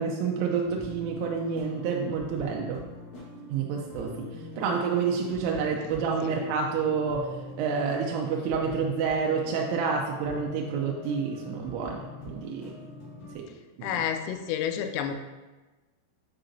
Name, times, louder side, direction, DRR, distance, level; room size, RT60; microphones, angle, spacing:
voice 1, 0.0-2.8 3.5-7.3 7.6-12.7 13.4-13.5 13.8-13.9, right 5 dB, 85° right, 0 dB, 3.0 m, -29 dB
sound 1, 0.6-13.3, left 2 dB, 60° left, 2.0 m, -43 dB
voice 2, 13.8-15.2, left 9 dB, 90° left, 6 dB, 3.3 m, -30 dB
7.8 x 4.8 x 2.6 m, 1.2 s
omnidirectional pair, 5.9 m